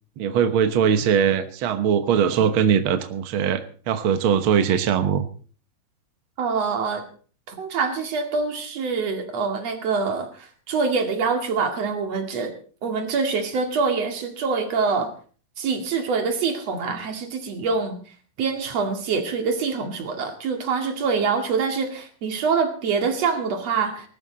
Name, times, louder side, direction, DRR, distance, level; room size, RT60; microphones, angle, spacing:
voice 1, 0.2-5.3, right 8 dB, 75° right, 9 dB, 1.1 m, -21 dB
voice 2, 6.4-7.1 7.5-12.5 12.8-15.1 15.6-18.0 18.4-24.1, right 5 dB, 50° right, 5 dB, 3.1 m, -25 dB
19.5 x 13.0 x 4.0 m, 0.41 s
omnidirectional pair, 4.0 m